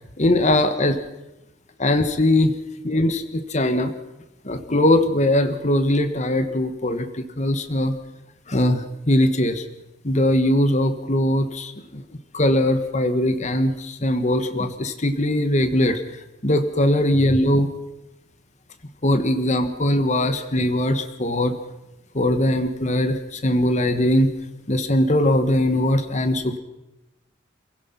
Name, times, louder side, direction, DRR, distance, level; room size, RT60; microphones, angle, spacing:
voice 1, 0.2-1.0 1.8-2.5 2.8-3.9 4.4-7.9 8.5-9.6 10.0-12.0 12.3-16.0 16.4-17.7 19.0-21.5 22.1-24.3 24.7-26.6, left 1 dB, 35° left, 8 dB, 1.4 m, -20 dB
28.0 x 16.5 x 5.9 m, 0.97 s
head